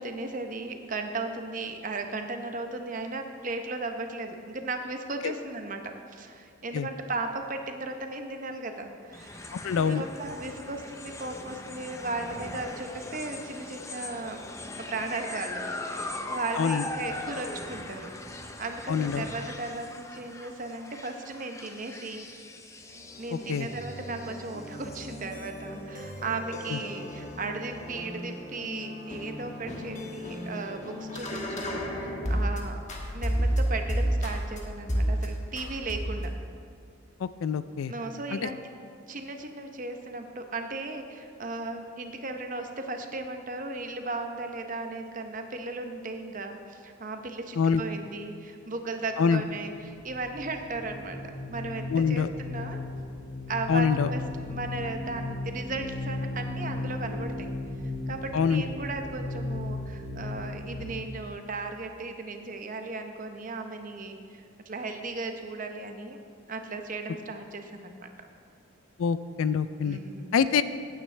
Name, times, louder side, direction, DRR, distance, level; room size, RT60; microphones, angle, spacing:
voice 1, 0.0-14.4 14.8-18.1 18.6-22.3 23.2-32.8 33.1-36.3 37.9-38.6 39.1-52.8 53.5-54.2 54.5-57.5 58.1-66.2 66.5-68.1 69.8-70.3, right 3 dB, 40° right, 5 dB, 0.8 m, -36 dB
sound 1, 9.1-25.6, left 2 dB, 15° left, 0.5 m, -40 dB
voice 2, 9.5-10.0 16.6-16.8 18.9-19.3 23.5-23.7 26.7-26.8 37.2-37.9 38.3-38.5 47.6-47.8 49.2-49.4 51.9-52.3 53.7-54.1 58.3-58.6 69.0-70.0 70.3-70.6, left 6 dB, 80° left, 14 dB, 0.4 m, -25 dB
sound 2, 22.8-32.6 32.9-34.6 34.9-35.3 35.6-36.3, equal, 35° left, 1.3 m, -33 dB
sound 3, 49.6-60.9, left 2 dB, 90° right, 3.0 m, -36 dB
16.0 x 9.1 x 3.3 m, 2.3 s
head